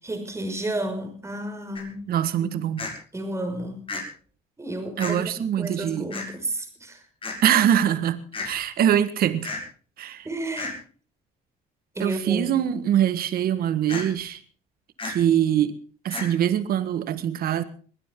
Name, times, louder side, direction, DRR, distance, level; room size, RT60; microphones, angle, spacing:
voice 1, 0.0-2.0 2.3-2.5 3.1-3.9 4.6-7.1 10.2-10.8 12.0-12.5, right 1 dB, 15° right, 5.5 m, -32 dB
sound 1, 1.8-1.9 2.8-2.9 3.9-4.0 5.0-5.1 6.1-6.3 7.2-7.4 8.3-8.5 9.4-9.6 10.6-10.7 13.9-14.0 15.0-15.1 16.1-16.3, left 3 dB, 30° left, 6.9 m, -32 dB
voice 2, 2.1-2.9 5.0-6.1 7.4-9.5 10.0-10.3 12.0-14.4 15.0-15.8 16.0-17.6, right 10 dB, 60° right, 1.6 m, -23 dB
22.0 x 16.0 x 3.8 m
cardioid pair, 110°, 17 cm